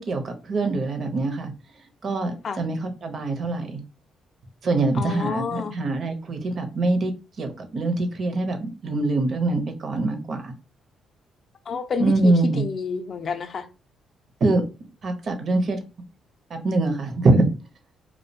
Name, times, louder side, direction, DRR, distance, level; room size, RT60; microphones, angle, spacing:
voice 1, 0.0-1.5 2.0-3.8 4.6-7.1 7.4-10.5 12.0-12.6 14.4-14.6 15.0-15.8 16.5-17.5, right 2 dB, 50° right, 0.6 m, -24 dB
voice 2, 4.9-5.8 11.7-13.7, left 5 dB, 50° left, 0.4 m, -29 dB
2.4 x 2.1 x 2.7 m
cardioid pair, 90°, 0 cm